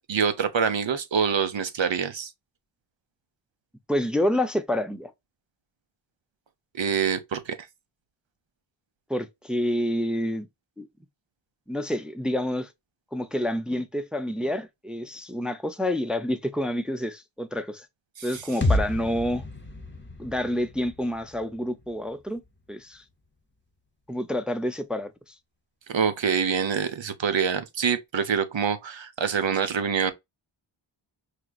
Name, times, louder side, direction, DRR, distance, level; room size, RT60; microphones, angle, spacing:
voice 1, 0.0-2.3 6.7-7.5 18.2-18.4 25.9-30.1, right 6 dB, 70° right, 0.9 m, -25 dB
voice 2, 3.9-5.1 9.1-10.5 10.8-10.9 11.7-12.7 13.1-17.9 18.2-19.4 20.2-22.4 22.7-23.0 24.1-25.3, left 1 dB, ahead, 0.5 m, -28 dB
sound 1, 18.6-22.5, left 1 dB, 25° left, 0.9 m, -30 dB
4.9 x 2.8 x 2.3 m
wide cardioid pair, 70°, 48 cm